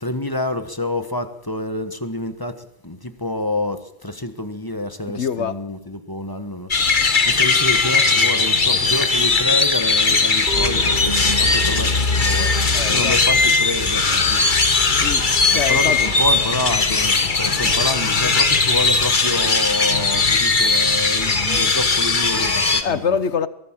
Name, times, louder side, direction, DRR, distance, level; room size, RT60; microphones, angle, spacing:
voice 1, 0.0-2.5 2.8-3.8 4.0-6.7 7.3-12.5 12.9-14.0 14.3-14.4 15.5-23.2, left 1 dB, 20° left, 1.4 m, -27 dB
voice 2, 5.1-5.6 12.7-13.4 15.0-16.0 22.8-23.5, left 6 dB, 80° left, 1.3 m, -25 dB
sound 1, 6.7-22.8, left 4 dB, 45° left, 1.6 m, -18 dB
22.5 x 16.5 x 7.6 m
omnidirectional pair, 1.2 m